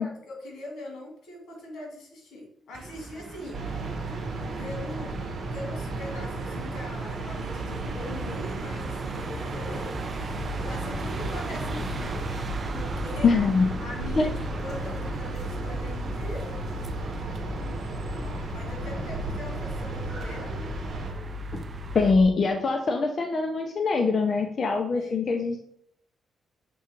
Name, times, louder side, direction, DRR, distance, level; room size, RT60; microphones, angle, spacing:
voice 1, 0.0-3.6 4.6-5.2 5.5-9.9 10.5-12.3 12.7-13.3 13.8-16.5 18.5-20.7 24.9-25.2, left 1 dB, 75° left, -1 dB, 2.1 m, -41 dB
sound 1, 2.7-22.1, right 3 dB, 30° right, 0.5 m, -39 dB
sound 2, 3.5-21.1, right 3 dB, 50° right, 1.2 m, -35 dB
sound 3, 10.1-22.2, left 2 dB, 5° right, 1.4 m, -37 dB
voice 2, 13.2-13.7 14.2-14.3 21.5-21.6 21.9-25.6, left 4 dB, 40° left, 3 dB, 0.6 m, -23 dB
6.1 x 3.5 x 4.5 m, 0.66 s
cardioid pair, 145°, 0 cm